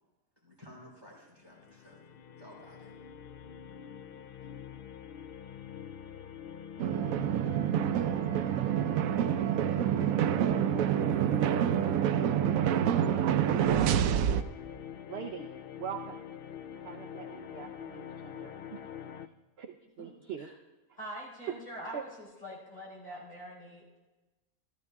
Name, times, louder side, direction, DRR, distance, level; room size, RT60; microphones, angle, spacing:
voice 1, 0.4-2.0 2.4-2.9, left 1 dB, 15° right, -3 dB, 3.5 m, -53 dB
sound 1, 1.4-19.3, left 9 dB, 70° left, 0.5 m, -45 dB
sound 2, 6.8-14.4, right 10 dB, 85° right, 1.0 m, -27 dB
voice 2, 13.2-13.9 15.1-15.5 15.8-16.2 16.8-18.8 19.6-20.5 21.9-22.0, right 8 dB, 55° right, 6 dB, 0.8 m, -42 dB
voice 3, 20.0-20.5 21.0-24.0, equal, 30° left, -5 dB, 4.4 m, -44 dB
14.5 x 13.5 x 3.5 m, 1.1 s
omnidirectional pair, 1.4 m